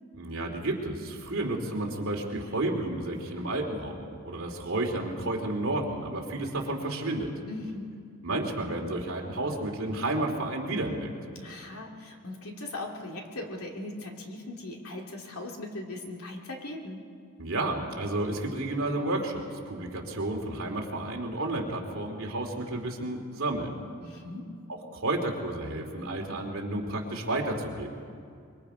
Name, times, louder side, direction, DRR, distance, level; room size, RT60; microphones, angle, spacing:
voice 1, 0.1-7.3 8.2-11.1 17.4-23.7 24.9-27.9, right 2 dB, 65° right, 0 dB, 2.8 m, -31 dB
voice 2, 7.5-8.0 11.4-17.0 24.0-24.5, left 2 dB, 80° left, 0 dB, 2.6 m, -39 dB
24.5 x 23.0 x 5.0 m, 2.3 s
head